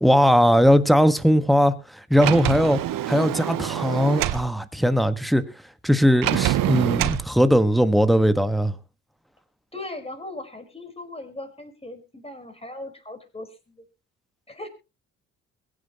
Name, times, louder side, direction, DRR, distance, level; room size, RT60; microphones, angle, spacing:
voice 1, 0.0-2.8 3.1-5.4 5.8-8.8, equal, ahead, 1.6 m, -19 dB
Sliding door, 2.2-4.5 6.2-7.3, right 13 dB, 60° right, 0.9 m, -25 dB
voice 2, 9.7-13.8 14.5-14.7, left 2 dB, 15° left, 5.0 m, -38 dB
22.5 x 9.7 x 3.1 m
hypercardioid pair, 50°, 36 cm